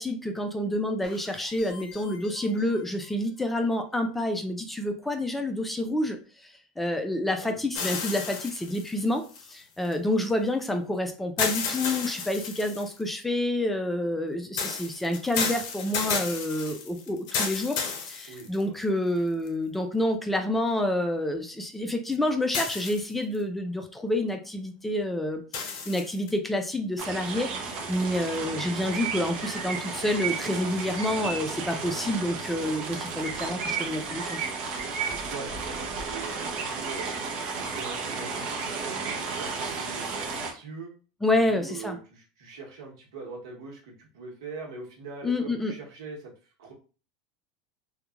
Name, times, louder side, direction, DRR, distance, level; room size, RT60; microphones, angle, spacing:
voice 1, 0.0-6.2 6.4-9.2 9.5-34.4 41.2-42.0 45.2-45.7, left 1 dB, 5° left, 5 dB, 0.4 m, -28 dB
sound 1, 1.0-3.5, left 4 dB, 35° left, 1.3 m, -49 dB
voice 2, 7.4-7.9 18.3-18.7 35.3-37.1 37.6-40.9 41.3-46.3 46.6-46.7, right 4 dB, 90° right, 0 dB, 1.0 m, -42 dB
sound 2, 7.7-9.9 11.4-13.0 14.6-18.8 19.5-19.6 22.5-23.4 25.5-26.3, left 5 dB, 60° left, 0.6 m, -32 dB
sound 3, 27.0-40.5, right 5 dB, 45° right, 0.6 m, -33 dB
2.8 x 2.2 x 2.4 m, 0.37 s
supercardioid pair, 130°, 3 cm